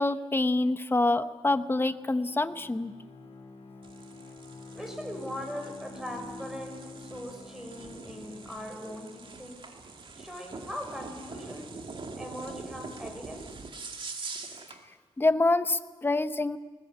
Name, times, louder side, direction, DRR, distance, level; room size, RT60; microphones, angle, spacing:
voice 1, 0.0-2.9 15.2-16.6, left 2 dB, 20° left, 11 dB, 0.9 m, -26 dB
Bowed string instrument, 1.8-9.6, left 3 dB, 55° left, 3.6 m, -47 dB
Brake Concrete High Speed OS, 3.8-14.8, right 4 dB, 50° right, 2.3 m, -44 dB
voice 2, 4.7-9.6 10.2-11.8 12.2-13.5, equal, 5° right, 4 dB, 5.3 m, -40 dB
20.5 x 20.0 x 8.3 m, 1.4 s
cardioid pair, 95°, 11 cm